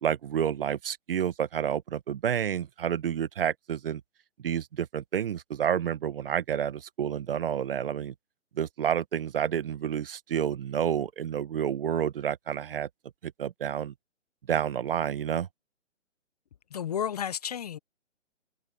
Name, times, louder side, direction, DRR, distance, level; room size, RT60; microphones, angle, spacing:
voice 1, 0.0-4.0 4.4-8.1 8.6-12.9 13.4-13.9 14.5-15.5, right 9 dB, 45° right, 1.3 m, -29 dB
voice 2, 16.7-17.8, left 9 dB, 30° left, 0.8 m, -32 dB
hypercardioid pair, 155°, 38 cm